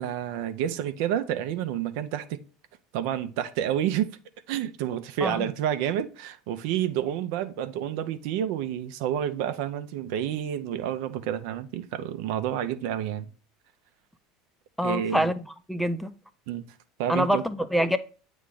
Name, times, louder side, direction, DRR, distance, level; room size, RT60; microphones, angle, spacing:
voice 1, 0.0-2.4 2.9-4.1 4.5-13.3 14.8-15.3 16.5-16.6 17.0-17.4, right 10 dB, 65° right, 0.5 m, -29 dB
voice 2, 14.8-16.1 17.1-18.0, equal, ahead, 0.5 m, -26 dB
8.3 x 3.1 x 3.7 m
hypercardioid pair, 80°, 0 cm